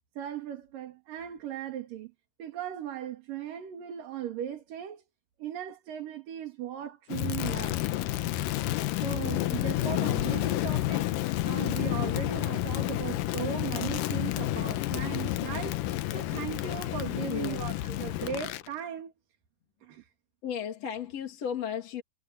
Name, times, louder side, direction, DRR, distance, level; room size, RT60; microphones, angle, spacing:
voice 1, 0.2-2.1 2.4-5.0 5.4-7.9 9.0-15.8 16.1-19.1 19.8-20.1, right 10 dB, 80° right, 4.0 m, -38 dB
Crackle, 7.1-18.7, left 15 dB, 80° left, 2.5 m, -30 dB
voice 2, 17.2-17.6 20.4-22.0, left 8 dB, 50° left, 3.5 m, -34 dB
omnidirectional pair, 3.8 m